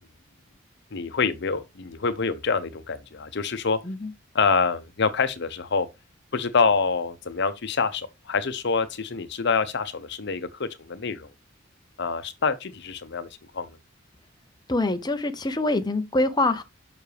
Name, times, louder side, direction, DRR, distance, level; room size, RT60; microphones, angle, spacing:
voice 1, 0.9-3.8 4.3-5.9 6.3-11.3 12.0-13.3 13.5-13.8, left 5 dB, 60° left, 0.8 m, -26 dB
voice 2, 14.7-16.6, left 2 dB, 20° left, 0.7 m, -24 dB
7.2 x 6.0 x 3.3 m
head